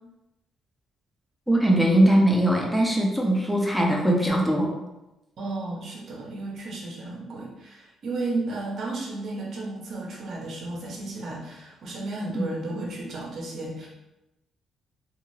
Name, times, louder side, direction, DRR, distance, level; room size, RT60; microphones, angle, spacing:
voice 1, 1.5-4.8 12.3-12.4, right 1 dB, ahead, -1 dB, 0.6 m, -21 dB
voice 2, 5.4-13.9, right 2 dB, 60° right, -3 dB, 0.8 m, -33 dB
2.5 x 2.4 x 3.1 m, 0.95 s
cardioid pair, 90°, 0 cm